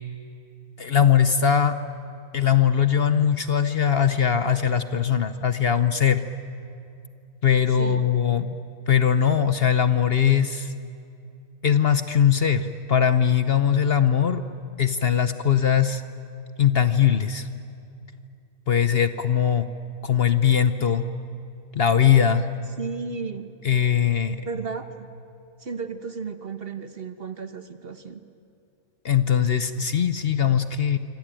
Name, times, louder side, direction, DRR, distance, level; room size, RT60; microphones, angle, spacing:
voice 1, 0.8-1.8 2.3-6.2 7.4-8.5 8.9-10.7 11.6-14.4 14.8-16.0 16.6-17.5 18.7-19.7 20.0-21.0 21.7-22.5 23.6-24.4 29.0-31.0, left 8 dB, 50° left, 11 dB, 0.9 m, -20 dB
voice 2, 22.8-23.5 24.5-25.1 25.6-28.2, right 5 dB, 45° right, 10 dB, 1.2 m, -34 dB
26.5 x 25.0 x 9.0 m, 2.5 s
omnidirectional pair, 1.5 m